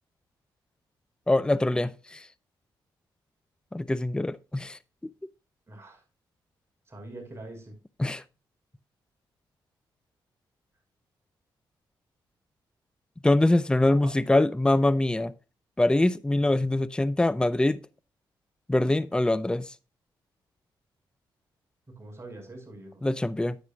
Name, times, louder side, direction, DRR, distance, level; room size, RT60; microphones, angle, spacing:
voice 1, 1.3-2.3 3.7-5.1 8.0-8.2 13.2-15.3 15.8-17.8 18.7-19.7 23.0-23.6, left 2 dB, 10° left, 0.5 m, -24 dB
voice 2, 5.7-6.0 6.9-7.7 13.9-14.1 21.9-23.0, right 2 dB, 30° right, 5.2 m, -44 dB
9.7 x 9.2 x 2.4 m
supercardioid pair, 55°, 9 cm